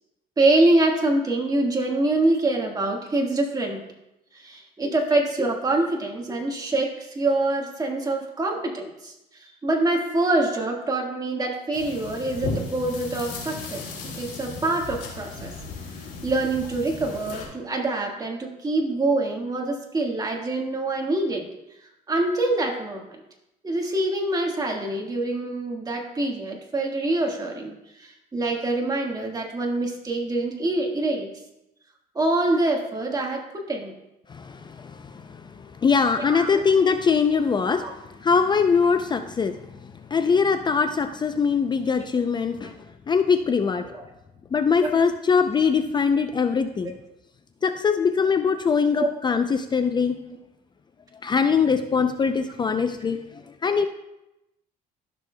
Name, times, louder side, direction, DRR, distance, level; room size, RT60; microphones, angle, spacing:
voice 1, 0.4-3.8 4.3-13.8 14.2-15.5 16.2-21.5 22.1-23.0 23.6-31.3 32.1-33.9 36.2-36.6 37.8-37.9 42.6-42.7 43.8-44.0 44.8-44.9 49.0-49.1, right 2 dB, 20° right, 1 dB, 1.5 m, -25 dB
sound 1, 11.7-17.5, left 4 dB, 90° left, 3.1 m, -36 dB
voice 2, 34.3-42.7 43.1-43.9 44.5-46.9 47.6-50.1 51.2-53.9, left 5 dB, 25° left, 8 dB, 0.4 m, -22 dB
13.5 x 6.2 x 2.2 m, 0.90 s
cardioid pair, 110°, 17 cm